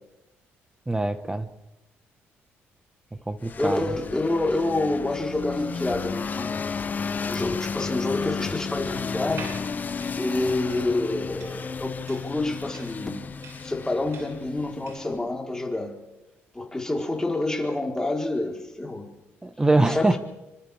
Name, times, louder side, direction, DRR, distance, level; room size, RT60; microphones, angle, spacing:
voice 1, 0.9-1.5 3.3-3.8 19.4-20.2, right 2 dB, 15° right, 10 dB, 1.6 m, -23 dB
sound 1, 3.4-15.2, left 5 dB, 35° left, 0.9 m, -33 dB
voice 2, 3.6-6.8 7.2-9.5 10.2-13.2 13.6-15.9 16.5-19.1 19.9-20.2, left 2 dB, 15° left, 0 dB, 4.4 m, -28 dB
sound 2, 9.2-15.2, right 4 dB, 80° right, 8.0 m, -46 dB
28.0 x 25.0 x 3.7 m, 0.98 s
cardioid pair, 85°, 5 cm